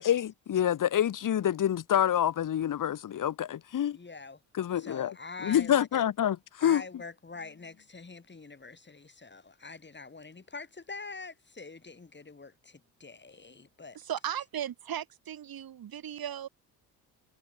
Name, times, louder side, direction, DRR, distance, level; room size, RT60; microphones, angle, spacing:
voice 1, 0.0-4.0 4.6-5.1 5.4-6.8, left 10 dB, 40° left, 1.4 m, -27 dB
voice 2, 3.9-4.4 4.7-6.0 6.6-14.0, left 4 dB, 25° left, 3.3 m, -45 dB
voice 3, 13.9-16.5, right 10 dB, 50° right, 2.7 m, -36 dB
hypercardioid pair, 50°, 47 cm